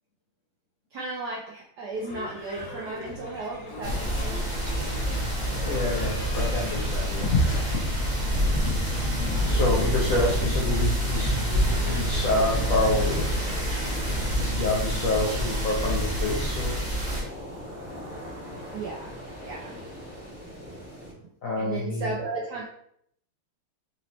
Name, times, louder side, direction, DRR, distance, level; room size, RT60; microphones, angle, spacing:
voice 1, 0.9-4.5 17.4-17.5 18.7-19.8 21.2-21.3 21.6-22.6, right 3 dB, 80° right, -3 dB, 0.9 m, -35 dB
Livestock farm animals working animals / Bell, 1.9-17.8, left 1 dB, 65° left, 1.8 m, -41 dB
sound 1, 3.8-17.2, equal, 25° right, 1.1 m, -27 dB
voice 2, 5.4-11.4 11.9-13.3 14.3-16.8 21.4-22.1, left 2 dB, 85° left, -3 dB, 0.7 m, -28 dB
sound 2, 13.0-21.1, equal, 10° right, 0.9 m, -41 dB
4.2 x 2.7 x 3.0 m, 0.69 s
omnidirectional pair, 2.4 m